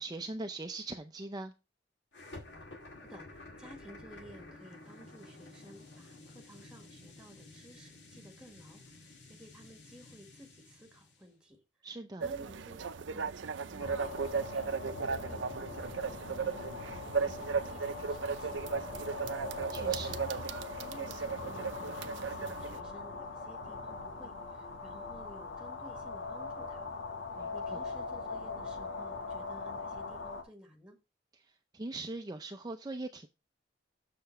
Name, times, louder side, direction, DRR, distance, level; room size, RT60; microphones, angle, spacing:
voice 1, 0.0-1.5 11.8-12.3 19.6-20.2 27.4-27.8 31.3-33.3, right 2 dB, 20° right, 0.5 m, -41 dB
sound 1, 2.1-11.2, left 2 dB, 70° left, 1.9 m, -52 dB
voice 2, 3.0-11.6 12.2-16.6 16.8-19.2 19.5-20.5 20.7-27.0 27.5-31.0, equal, 5° right, 1.5 m, -55 dB
sound 2, 12.2-22.8, right 5 dB, 80° right, 0.6 m, -36 dB
sound 3, 13.8-30.4, left 4 dB, 85° left, 1.6 m, -41 dB
6.8 x 6.7 x 3.1 m
head